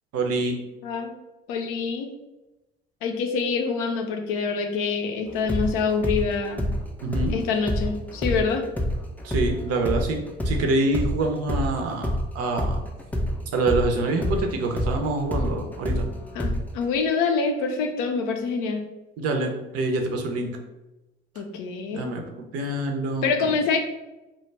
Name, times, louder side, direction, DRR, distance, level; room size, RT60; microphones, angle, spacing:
voice 1, 0.1-0.5 7.0-7.4 9.2-12.8 13.5-16.1 19.2-20.5 21.9-22.2 22.5-23.3, right 2 dB, 50° right, 3 dB, 0.6 m, -26 dB
voice 2, 0.8-1.1 1.5-2.1 3.0-6.7 7.3-8.6 16.3-18.8 21.4-22.1 23.2-23.8, left 5 dB, 70° left, 4 dB, 0.5 m, -26 dB
sound 1, 5.3-12.3 12.6-16.9, left 1 dB, 5° left, 0.4 m, -27 dB
2.2 x 2.1 x 3.2 m, 1.0 s
hypercardioid pair, 55°, 30 cm